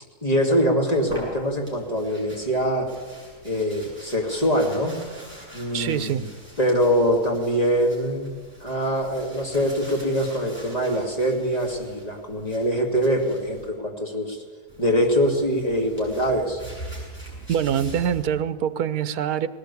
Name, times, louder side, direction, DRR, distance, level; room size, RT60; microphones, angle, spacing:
voice 1, 0.2-2.9 3.4-5.0 5.5-6.2 6.6-8.3 8.6-14.4 14.8-16.6, equal, 25° left, 1 dB, 2.7 m, -23 dB
sound 1, 0.9-13.7 14.7-18.2, right 1 dB, 5° left, 7.4 m, -43 dB
voice 2, 5.7-6.3 17.5-19.5, right 9 dB, 75° right, 14 dB, 1.3 m, -24 dB
19.0 x 18.0 x 8.4 m, 1.4 s
omnidirectional pair, 1.7 m